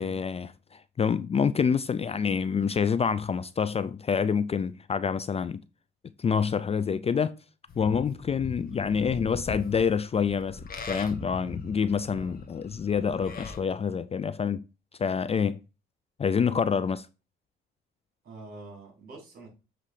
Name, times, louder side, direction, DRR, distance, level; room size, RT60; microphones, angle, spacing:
voice 1, 0.0-5.6 6.2-7.3 7.8-10.6 10.9-14.6 15.0-15.6 16.2-17.1, left 6 dB, 30° left, 0.4 m, -27 dB
Livestock farm animals working animals, 7.7-13.6, left 4 dB, 45° left, 1.7 m, -40 dB
voice 2, 18.2-19.5, right 2 dB, 50° right, 4.8 m, -46 dB
7.6 x 3.8 x 4.8 m
cardioid pair, 90°, 20 cm